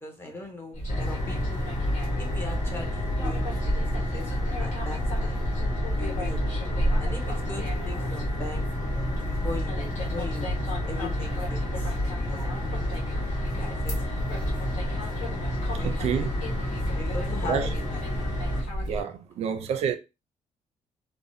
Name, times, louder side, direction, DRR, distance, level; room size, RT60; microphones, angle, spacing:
voice 1, 0.0-1.7 2.2-5.4 5.9-6.4 7.0-8.7 9.2-10.6 10.8-11.9 12.3-12.6 13.8-14.2 15.8-15.9 16.7-18.0, left 2 dB, 20° left, 0.7 m, -40 dB
sound 1, 0.7-19.0, equal, 70° left, 1.2 m, -30 dB
sound 2, 0.9-18.6, left 2 dB, 55° left, 1.6 m, -33 dB
voice 2, 15.8-16.3 17.5-17.7 18.8-20.0, right 7 dB, 55° right, 0.4 m, -28 dB
3.3 x 2.0 x 2.6 m
cardioid pair, 180°, 13 cm